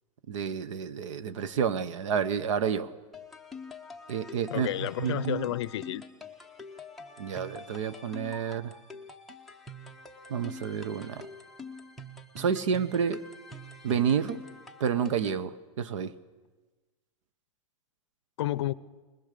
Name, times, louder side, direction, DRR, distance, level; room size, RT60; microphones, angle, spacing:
voice 1, 0.3-2.9 4.1-5.5 7.2-8.7 10.3-11.3 12.3-13.2 13.8-14.4 14.8-16.1, right 7 dB, 70° right, 15 dB, 1.0 m, -30 dB
sound 1, 3.1-15.4, left 2 dB, ahead, 0.6 m, -46 dB
voice 2, 4.5-6.0 18.4-18.7, left 14 dB, 55° left, 19 dB, 0.6 m, -31 dB
21.0 x 20.0 x 6.8 m, 1.3 s
supercardioid pair, 180°, 17 cm